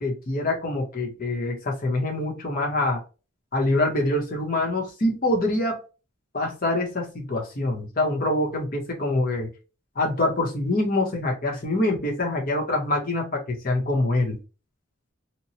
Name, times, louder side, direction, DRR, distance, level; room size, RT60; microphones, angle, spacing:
voice 1, 0.0-3.0 3.5-5.8 6.3-9.5 10.0-14.4, left 2 dB, 40° left, 0.9 m, -25 dB
2.9 x 2.2 x 2.7 m
head